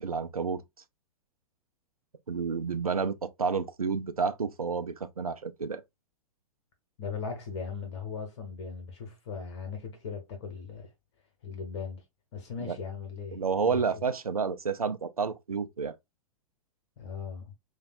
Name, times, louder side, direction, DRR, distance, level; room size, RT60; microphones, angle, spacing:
voice 1, 0.0-0.6 2.3-5.8 12.7-12.8 13.3-16.0, right 5 dB, 85° right, 0.5 m, -30 dB
voice 2, 7.0-10.9 11.4-12.0 12.3-14.0 17.0-17.5, left 5 dB, 50° left, 1.2 m, -38 dB
5.2 x 2.4 x 2.3 m
figure-of-eight pair, 105°, 18 cm